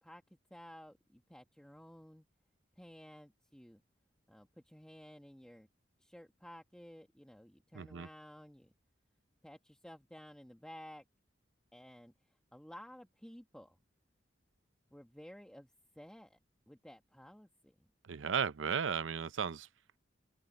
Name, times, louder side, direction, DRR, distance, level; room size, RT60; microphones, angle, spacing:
voice 1, 0.0-2.3 2.8-3.8 4.3-5.7 6.0-8.7 9.4-11.0 11.7-12.1 12.5-13.8 14.9-16.4 16.7-17.9, equal, 5° left, 1.2 m, -54 dB
voice 2, 7.7-8.1 18.1-19.7, right 7 dB, 85° right, 0.6 m, -35 dB
open air
head